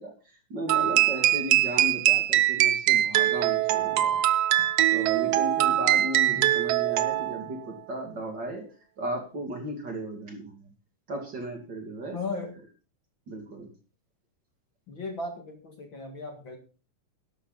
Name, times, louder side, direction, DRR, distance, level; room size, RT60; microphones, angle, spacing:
voice 1, 0.0-4.2 4.6-10.7 11.1-12.2 13.3-13.7, right 1 dB, 40° right, 3 dB, 2.8 m, -36 dB
sound 1, 0.7-7.5, right 13 dB, 70° right, 1.6 m, -23 dB
voice 2, 12.1-12.5 14.9-16.6, left 3 dB, 45° left, 4 dB, 2.4 m, -36 dB
13.0 x 11.5 x 4.0 m, 0.35 s
omnidirectional pair, 3.4 m